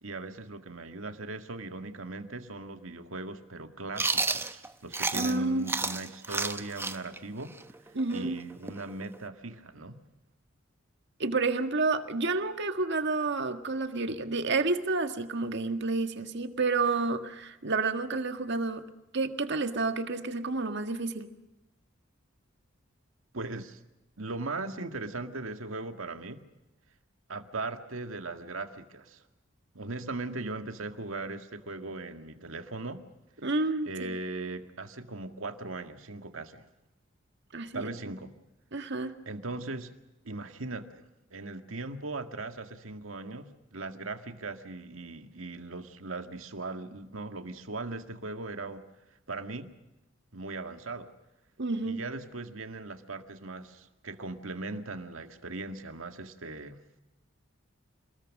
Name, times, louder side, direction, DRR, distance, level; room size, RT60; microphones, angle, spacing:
voice 1, 0.0-7.6 7.8-10.0 23.3-23.8 24.2-26.4 27.3-29.2 29.7-33.0 33.9-36.7 37.7-38.3 39.3-40.0 40.3-48.8 49.3-49.7 50.3-51.1 51.8-56.8, right 2 dB, 85° right, 7 dB, 1.9 m, -39 dB
Chewing mastication, 4.0-5.4 5.7-9.3, right 3 dB, 10° right, 0.9 m, -31 dB
voice 2, 5.1-5.7 7.9-8.4 11.2-18.8 19.1-21.3 33.4-34.2 37.5-37.9 38.7-39.1 51.6-52.0, right 3 dB, 60° right, 8 dB, 1.8 m, -30 dB
27.0 x 20.5 x 6.5 m, 0.95 s
head